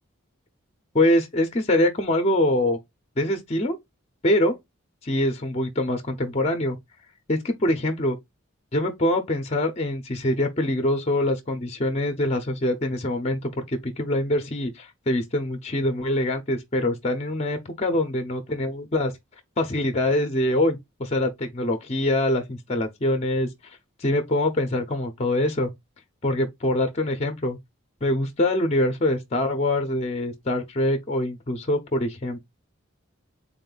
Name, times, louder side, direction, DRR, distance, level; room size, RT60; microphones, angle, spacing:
voice 1, 0.9-2.8 3.2-3.8 4.2-4.6 5.0-6.8 7.3-8.2 8.7-19.1 19.6-25.7 26.2-27.6 28.0-32.5, left 1 dB, 30° left, 0.6 m, -24 dB
3.6 x 2.5 x 3.8 m
head